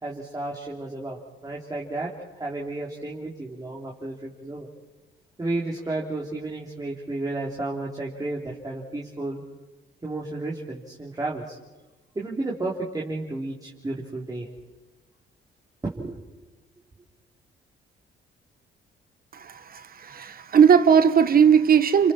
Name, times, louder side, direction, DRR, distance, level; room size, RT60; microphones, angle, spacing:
voice 1, 0.0-4.7 5.4-9.4 10.0-11.6 12.1-14.5 15.8-16.2, right 2 dB, 20° right, -4 dB, 3.1 m, -32 dB
voice 2, 19.3-22.1, right 7 dB, 45° right, 11 dB, 1.1 m, -18 dB
29.5 x 26.0 x 4.3 m, 1.2 s
cardioid pair, 90°, 20 cm